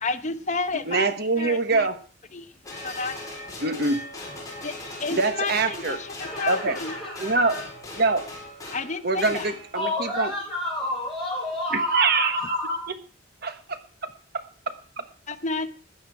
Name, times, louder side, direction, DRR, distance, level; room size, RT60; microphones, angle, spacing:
voice 1, 0.0-1.1 1.4-1.9 2.3-2.5 2.8-3.2 4.6-7.0 8.7-9.5 15.3-15.7, left 3 dB, 35° left, 8 dB, 0.9 m, -31 dB
voice 2, 0.9-2.0 3.6-4.0 5.1-6.0 6.5-6.8 7.2-7.6 8.0-8.3 9.0-10.3 11.7-12.4 13.4-13.8 14.3-14.4, right 3 dB, 50° right, 9 dB, 1.2 m, -24 dB
sound 1, 2.6-10.1 11.0-11.1, left 2 dB, 15° left, 4.0 m, -39 dB
voice 3, 6.2-7.6 9.7-12.8, left 2 dB, ahead, -6 dB, 5.1 m, -30 dB
14.0 x 9.1 x 4.8 m, 0.41 s
head